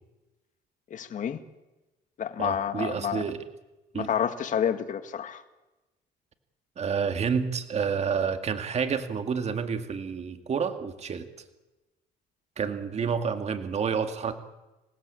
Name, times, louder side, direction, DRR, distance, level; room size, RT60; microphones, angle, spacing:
voice 1, 0.9-1.4 2.2-3.2 3.9-5.4, left 8 dB, 50° left, 9 dB, 2.0 m, -29 dB
voice 2, 2.4-3.5 3.9-4.1 6.8-11.3 12.6-14.3, right 6 dB, 40° right, 8 dB, 2.2 m, -29 dB
27.0 x 17.5 x 8.6 m, 1.1 s
cardioid pair, 110°, 17 cm